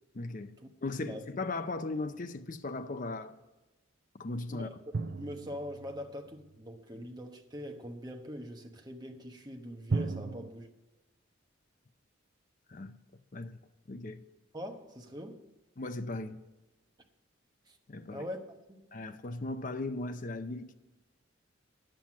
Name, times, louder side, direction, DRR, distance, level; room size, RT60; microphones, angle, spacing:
voice 1, 0.1-3.4 4.1-4.7 12.7-13.0 13.3-13.6 13.9-14.2 15.8-16.4 17.9-18.3 18.9-20.8, left 2 dB, 40° left, 0.5 m, -37 dB
sound 1, 4.9-6.6 9.9-10.5, right 3 dB, 50° right, 0.5 m, -36 dB
voice 2, 5.2-10.7 14.5-15.4 17.7-17.8 18.1-18.9, equal, 20° right, 1.1 m, -43 dB
10.0 x 7.7 x 7.3 m
head